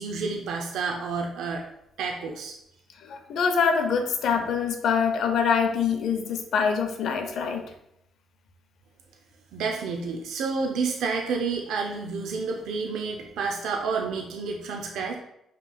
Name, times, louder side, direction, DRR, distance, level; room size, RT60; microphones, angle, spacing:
voice 1, 0.0-1.6 2.0-2.6 9.5-15.2, right 4 dB, 80° right, 1 dB, 0.5 m, -29 dB
voice 2, 3.0-7.6, left 6 dB, 75° left, 6 dB, 0.6 m, -25 dB
5.5 x 3.0 x 2.3 m, 0.80 s
cardioid pair, 90°, 0 cm